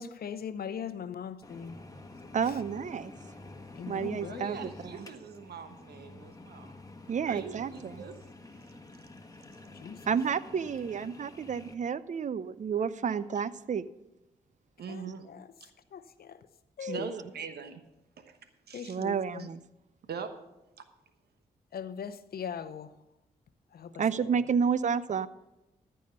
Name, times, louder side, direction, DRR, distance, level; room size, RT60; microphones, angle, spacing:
voice 1, 0.0-1.8 2.4-2.6 3.7-4.7 9.7-10.0 14.9-15.5 15.9-16.5 16.8-17.2 18.7-19.5 21.7-23.0 23.7-24.0 24.3-24.4, left 7 dB, 65° left, 0.7 m, -40 dB
sound 1, 1.4-11.7, left 2 dB, 20° left, 1.5 m, -49 dB
voice 2, 2.3-3.1 3.9-5.1 7.1-8.0 10.1-13.8 16.8-17.1 18.9-19.6 24.0-25.3, right 6 dB, 45° right, 0.5 m, -30 dB
voice 3, 4.2-6.7 7.3-8.1 13.1-13.2 14.8-15.3 15.6-15.7 16.9-17.8 18.2-18.4 18.7-19.0 20.1-20.3, right 6 dB, 70° right, 1.1 m, -42 dB
13.5 x 5.6 x 6.6 m
supercardioid pair, 40°, 17 cm